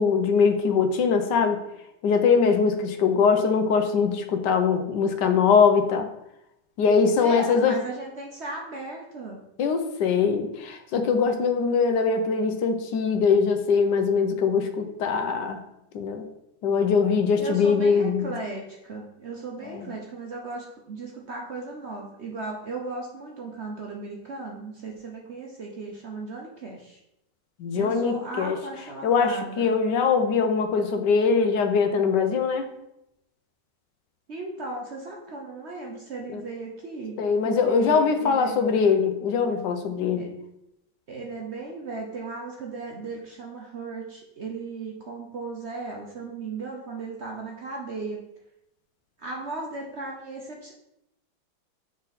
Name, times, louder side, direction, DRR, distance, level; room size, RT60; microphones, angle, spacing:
voice 1, 0.0-1.6 2.0-6.1 6.8-7.8 9.6-15.6 15.9-16.2 16.6-18.2 19.7-19.9 27.6-28.6 29.0-32.7 36.3-36.4 37.2-40.3, left 5 dB, 75° left, 7 dB, 1.3 m, -22 dB
voice 2, 7.1-9.4 17.4-27.0 27.7-29.7 34.3-37.2 37.4-38.6 40.2-40.3 41.1-48.2 49.2-50.7, right 3 dB, 55° right, -1 dB, 0.8 m, -36 dB
6.3 x 4.2 x 4.0 m, 0.84 s
omnidirectional pair, 1.9 m